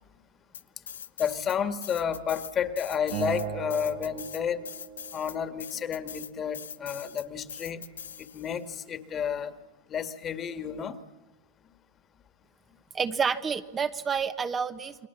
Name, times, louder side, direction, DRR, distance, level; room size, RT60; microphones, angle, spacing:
sound 1, 0.5-1.6 1.8-8.6, left 8 dB, 90° left, 0.8 m, -42 dB
voice 1, 1.2-4.6 5.1-7.8 8.3-9.5 9.9-11.0, left 8 dB, 35° left, 10 dB, 2.0 m, -31 dB
Acoustic guitar, 3.1-6.4, right 11 dB, 70° right, 1.5 m, -39 dB
voice 2, 12.9-15.1, right 6 dB, 25° right, 8 dB, 1.2 m, -29 dB
29.0 x 22.5 x 7.2 m, 1.2 s
hypercardioid pair, 100°, 0 cm